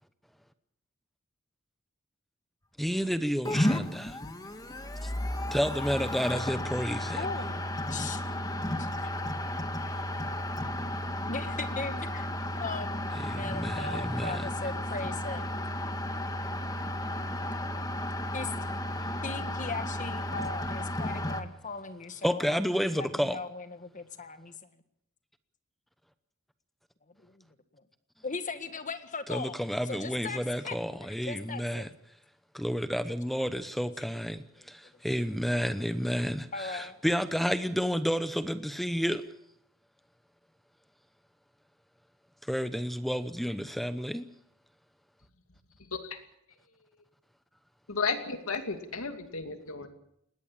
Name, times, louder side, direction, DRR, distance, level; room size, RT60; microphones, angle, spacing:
voice 1, 2.8-4.2 5.0-5.1 5.5-7.3 13.1-14.5 22.2-23.4 29.3-31.9 32.5-39.2 42.5-44.3, equal, ahead, 11 dB, 0.8 m, -31 dB
sound 1, 3.5-21.4, left 1 dB, 20° left, 1.6 m, -33 dB
voice 2, 7.1-8.2 8.8-9.1 11.3-12.3 12.6-15.6 18.3-18.5 19.2-24.5 27.2-27.4 28.2-29.5 29.9-30.8 31.2-31.9 34.9-35.0 36.5-37.0, left 4 dB, 35° left, 9 dB, 1.8 m, -39 dB
voice 3, 45.9-46.2 47.9-49.9, left 4 dB, 80° left, 6 dB, 2.6 m, -33 dB
20.5 x 17.5 x 8.7 m, 0.74 s
head